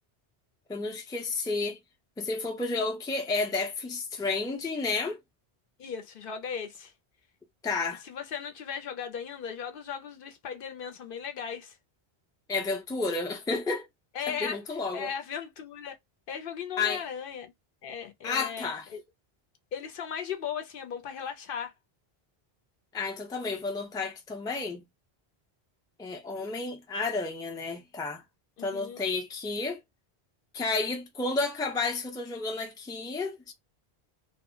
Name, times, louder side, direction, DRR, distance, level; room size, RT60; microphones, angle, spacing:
voice 1, 0.7-1.8 2.2-5.2 7.6-8.0 12.5-13.9 14.3-15.1 16.8-17.0 18.2-18.9 22.9-24.8 26.0-28.2 28.6-29.8 30.5-33.5, left 3 dB, 5° left, 0.4 m, -31 dB
voice 2, 5.8-6.9 8.0-11.8 14.1-14.6 14.9-16.0 16.3-17.5 17.8-19.0 19.7-21.7 28.6-29.0, left 7 dB, 65° left, 0.7 m, -37 dB
2.1 x 2.0 x 3.7 m
omnidirectional pair, 1.0 m